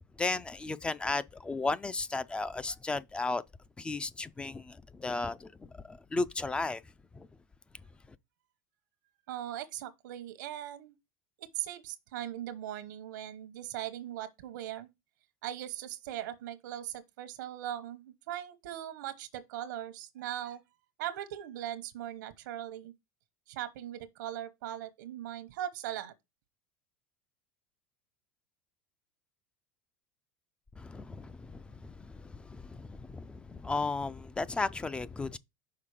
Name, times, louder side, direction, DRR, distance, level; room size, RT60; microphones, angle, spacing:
voice 1, 0.2-3.4 3.8-6.8 7.1-7.3 30.8-35.4, left 3 dB, 10° left, 0.3 m, -35 dB
voice 2, 9.3-10.9 11.4-14.9 15.4-20.6 21.0-22.9 23.5-26.1, right 12 dB, 85° right, 0.9 m, -39 dB
5.8 x 4.1 x 4.9 m
supercardioid pair, 135°, 10 cm